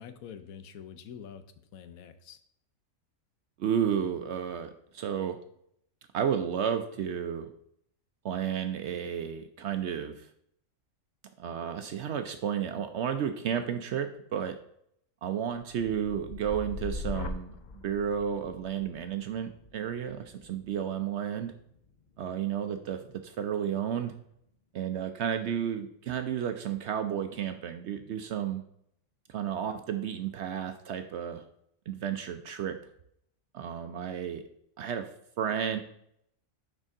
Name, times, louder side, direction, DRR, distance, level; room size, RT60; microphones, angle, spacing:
voice 1, 0.0-1.4 1.7-2.4, left 8 dB, 75° left, 10 dB, 1.1 m, -46 dB
voice 2, 3.6-5.4 6.1-7.5 8.2-10.3 11.4-14.6 15.2-17.5 17.8-21.5 22.2-24.1 24.7-28.6 29.3-31.4 31.9-32.8 33.5-34.4 34.8-35.1 35.4-35.8, right 8 dB, 65° right, 8 dB, 0.7 m, -32 dB
sound 1, 15.5-23.6 24.0-24.5, left 3 dB, 55° left, 0.5 m, -43 dB
6.4 x 5.3 x 3.7 m, 0.72 s
omnidirectional pair, 1.5 m